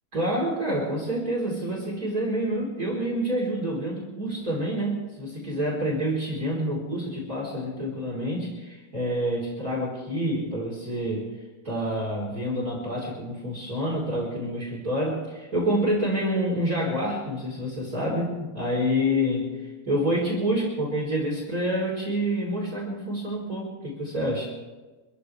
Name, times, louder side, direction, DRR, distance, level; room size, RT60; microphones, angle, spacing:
voice 1, 0.1-11.4 11.6-24.6, equal, 25° right, -3 dB, 4.4 m, -28 dB
26.5 x 15.0 x 3.4 m, 1.2 s
omnidirectional pair, 3.6 m